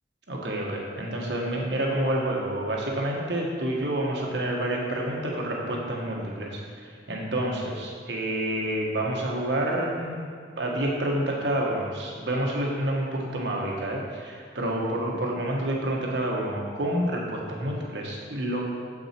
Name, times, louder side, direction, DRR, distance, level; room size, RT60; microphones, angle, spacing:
voice 1, 0.3-10.3 10.6-18.6, right 1 dB, 75° right, -1 dB, 1.2 m, -28 dB
7.5 x 6.4 x 4.4 m, 2.1 s
head